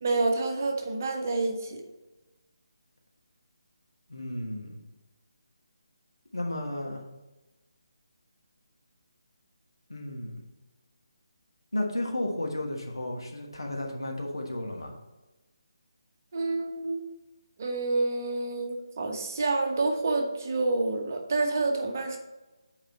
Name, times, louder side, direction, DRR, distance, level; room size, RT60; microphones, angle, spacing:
voice 1, 0.0-1.8 16.3-17.0 17.6-22.2, right 3 dB, 35° right, 2 dB, 1.1 m, -28 dB
voice 2, 4.1-4.8 6.3-7.0 9.9-10.4 11.7-15.0, left 1 dB, 75° left, 1 dB, 1.3 m, -33 dB
7.8 x 4.8 x 4.2 m, 1.1 s
figure-of-eight pair, 150°, 2 cm